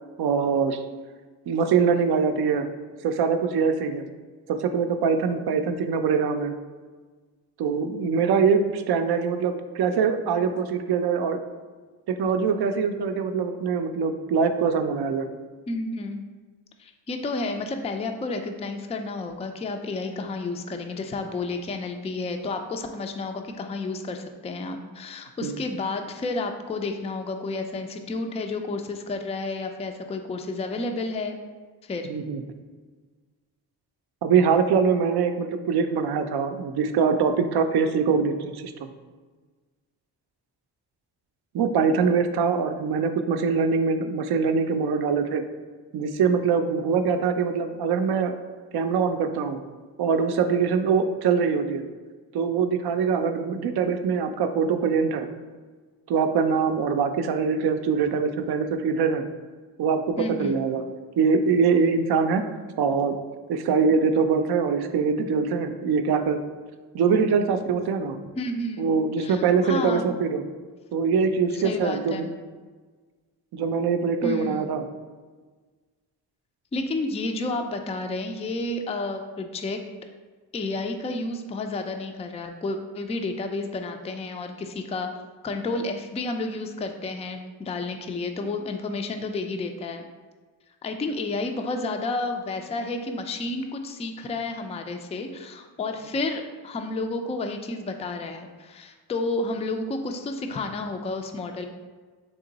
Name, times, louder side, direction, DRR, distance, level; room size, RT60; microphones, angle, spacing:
voice 1, 0.2-0.8 1.5-2.7 3.0-4.0 4.5-6.5 7.6-11.4 12.2-15.3 25.4-25.5 32.1-32.4 34.2-38.7 41.5-45.4 45.9-48.4 48.7-49.6 50.0-51.8 52.3-55.3 56.1-59.2 59.8-60.8 61.2-62.4 62.8-63.2 63.5-66.4 66.9-68.2 68.8-70.4 70.9-72.3 73.5-74.9, right 5 dB, 60° right, 8 dB, 0.5 m, -23 dB
voice 2, 15.7-16.2 16.8-31.4 31.8-32.1 60.2-60.6 68.4-68.9 69.2-70.2 71.5-72.3 74.2-74.7 76.7-79.8 80.5-85.1 85.4-90.1 90.8-101.7, left 2 dB, 15° left, 5 dB, 0.3 m, -31 dB
3.7 x 2.9 x 3.9 m, 1.4 s
cardioid pair, 65°, 43 cm